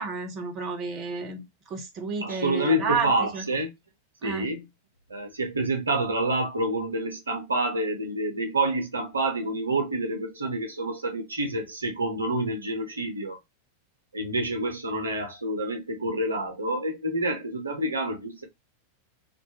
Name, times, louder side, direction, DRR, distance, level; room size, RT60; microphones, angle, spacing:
voice 1, 0.0-3.4 4.2-4.5, right 4 dB, 35° right, 0.7 m, -31 dB
voice 2, 2.2-3.7 4.2-4.6 5.1-13.4 14.1-18.4, right 1 dB, 75° right, 0.6 m, -28 dB
2.5 x 2.2 x 2.8 m
figure-of-eight pair, 90°, 0 cm